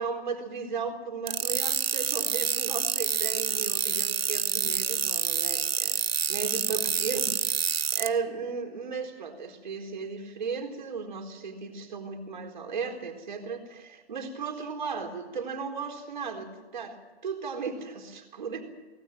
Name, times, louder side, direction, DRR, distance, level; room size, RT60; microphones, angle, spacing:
voice 1, 0.0-6.0 6.3-7.3 7.6-17.0 17.2-18.6, right 5 dB, 45° right, 4 dB, 4.1 m, -35 dB
sound 1, 1.3-8.1, right 7 dB, 65° right, 1.3 m, -28 dB
23.5 x 20.0 x 7.6 m, 1.2 s
hypercardioid pair, 175°, 33 cm